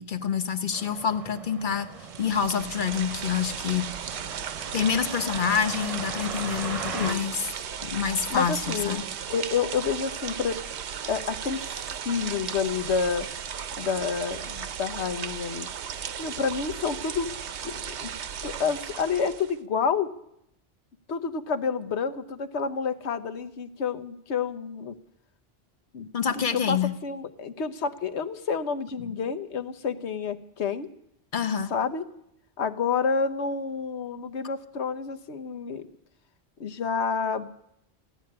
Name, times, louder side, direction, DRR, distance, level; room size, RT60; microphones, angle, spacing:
voice 1, 0.0-1.9 2.2-3.9 4.7-7.5 7.8-9.1 26.1-26.9 31.3-31.7, left 7 dB, 50° left, 9 dB, 1.0 m, -27 dB
sound 1, 0.7-7.1, right 4 dB, 35° right, 0.8 m, -39 dB
sound 2, 1.9-19.6, right 8 dB, 85° right, 1.1 m, -36 dB
voice 2, 6.9-7.3 8.3-9.0 9.3-10.6 11.1-11.6 12.0-13.3 13.8-15.7 16.2-17.3 17.6-18.1 18.4-20.1 21.1-24.9 25.9-26.1 26.4-30.9 31.7-32.0 32.6-35.9 36.6-37.5, left 5 dB, 90° left, 9 dB, 1.2 m, -29 dB
16.0 x 10.0 x 8.6 m, 0.78 s
omnidirectional pair, 1.1 m